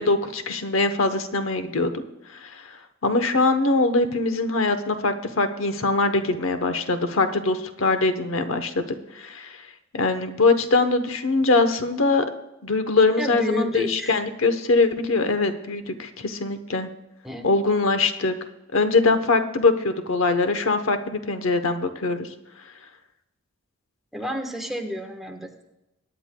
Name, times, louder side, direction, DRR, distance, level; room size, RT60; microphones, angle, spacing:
voice 1, 0.0-2.0 2.4-2.8 3.0-8.9 9.1-9.6 9.9-12.2 12.6-16.9 17.4-18.3 18.7-22.3, left 3 dB, 75° left, 9 dB, 0.9 m, -22 dB
voice 2, 13.2-14.1 17.2-17.5 24.1-25.6, equal, ahead, 2 dB, 1.1 m, -30 dB
22.0 x 10.0 x 2.2 m, 0.93 s
head